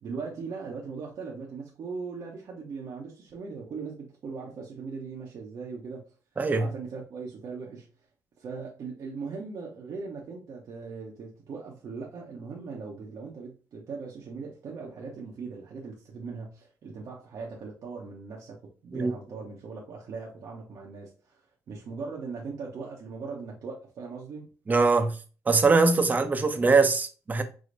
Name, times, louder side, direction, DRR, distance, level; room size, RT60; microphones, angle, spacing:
voice 1, 0.0-6.0 6.6-7.9 8.4-21.4 21.7-24.5, right 4 dB, 60° right, 0.9 m, -39 dB
voice 2, 6.4-6.7 18.9-19.1 24.7-25.2 25.5-27.4, right 4 dB, 25° right, 0.6 m, -22 dB
4.9 x 2.1 x 3.9 m
cardioid pair, 120°, 7 cm